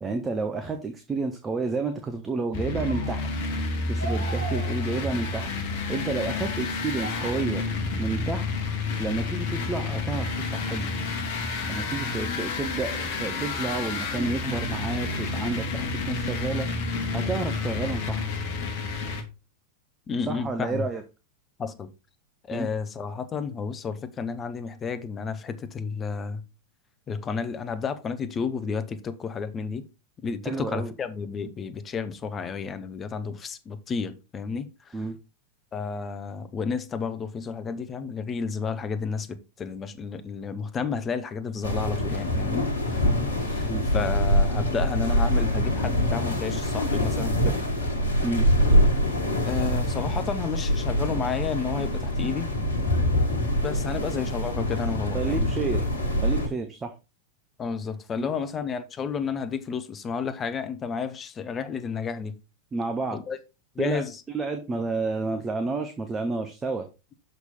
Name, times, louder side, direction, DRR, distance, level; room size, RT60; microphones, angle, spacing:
voice 1, 0.0-3.3 3.9-5.5 5.9-7.6 8.0-8.5 9.0-10.9 11.7-16.7 17.1-18.3 20.2-21.0 22.5-22.7 30.4-30.9 34.9-35.2 43.6-43.8 48.2-48.4 55.1-55.9 56.2-56.9 58.2-58.3 62.7-63.2 63.8-64.0 64.3-66.9, right 3 dB, 15° right, 0.8 m, -30 dB
sound 1, 1.5-1.7 2.8-3.6 4.0-5.3 6.0-6.2 7.0-7.3, right 3 dB, 75° right, 1.3 m, -39 dB
sound 2, 2.5-19.2, left 3 dB, 50° left, 1.2 m, -30 dB
voice 2, 20.1-20.9 21.6-21.9 22.5-26.4 27.1-29.9 30.2-35.0 35.7-43.0 43.5-47.6 49.4-52.5 53.6-55.5 57.6-62.4 63.1-63.4 63.8-64.1, left 5 dB, 25° left, 0.7 m, -31 dB
sound 3, 41.6-56.5, equal, 75° left, 1.3 m, -24 dB
6.3 x 5.4 x 4.1 m
figure-of-eight pair, 90°, 0 cm